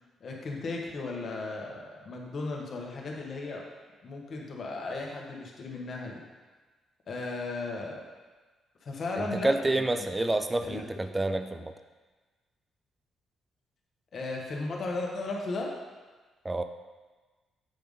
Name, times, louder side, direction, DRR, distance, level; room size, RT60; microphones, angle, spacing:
voice 1, 0.2-3.6 4.0-6.2 7.1-8.0 8.8-10.1 10.6-10.8 14.1-15.7, left 3 dB, 50° left, -1 dB, 1.4 m, -35 dB
voice 2, 9.2-11.7 16.4-16.6, right 2 dB, 15° right, 8 dB, 0.5 m, -28 dB
7.8 x 3.5 x 5.4 m, 1.3 s
cardioid pair, 90°, 0 cm